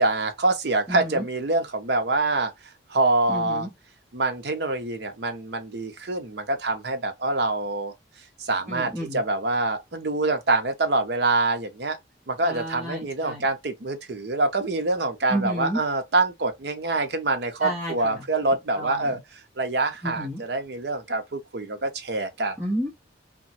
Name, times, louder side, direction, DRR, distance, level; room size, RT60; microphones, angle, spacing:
voice 1, 0.0-2.5 2.9-3.7 4.1-7.9 8.4-12.0 12.3-19.2 19.6-22.6, right 2 dB, 65° right, 0.6 m, -25 dB
voice 2, 0.9-1.2 3.3-3.7 8.7-9.2 12.4-13.4 15.3-15.8 17.6-18.2 18.7-19.2 20.0-20.4 22.6-22.9, equal, 10° right, 0.9 m, -31 dB
2.9 x 2.2 x 2.6 m
head